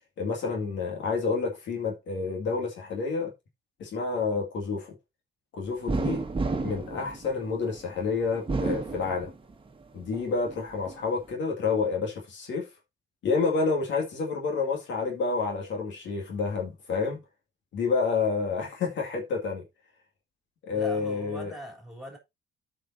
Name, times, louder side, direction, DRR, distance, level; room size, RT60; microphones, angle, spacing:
voice 1, 0.2-3.3 3.8-4.9 5.5-6.3 6.6-9.3 9.9-12.7 13.2-17.2 17.7-19.6 20.6-21.5, left 4 dB, 70° left, 2.2 m, -29 dB
sound 1, 5.9-7.8 8.3-9.7 10.1-11.0, right 3 dB, 25° right, 1.3 m, -31 dB
voice 2, 20.7-22.2, equal, ahead, 3.4 m, -41 dB
14.0 x 5.2 x 2.7 m
cardioid pair, 90°, 20 cm